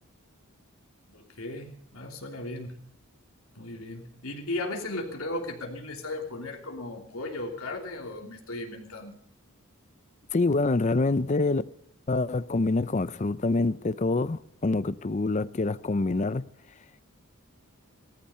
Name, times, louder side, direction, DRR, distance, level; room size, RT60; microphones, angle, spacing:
voice 1, 1.1-2.8 3.5-9.1, left 2 dB, 80° left, 3.1 m, -36 dB
voice 2, 10.3-11.6 12.1-16.4, left 3 dB, 35° left, 0.5 m, -26 dB
16.5 x 14.0 x 5.6 m
head